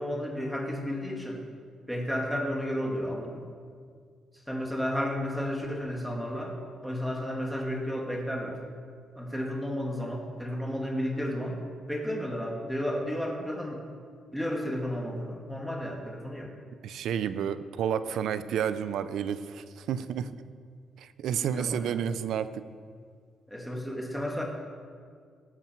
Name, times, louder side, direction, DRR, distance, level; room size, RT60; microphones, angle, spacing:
voice 1, 0.0-1.4 1.9-3.5 4.5-6.6 6.8-8.6 9.2-11.6 11.9-13.8 14.3-16.5 21.4-22.0 23.5-24.4, equal, ahead, -1 dB, 2.4 m, -32 dB
voice 2, 16.8-20.3 21.0-22.6, right 8 dB, 75° right, 13 dB, 0.5 m, -31 dB
18.0 x 7.3 x 4.6 m, 2.1 s
cardioid pair, 90°, 0 cm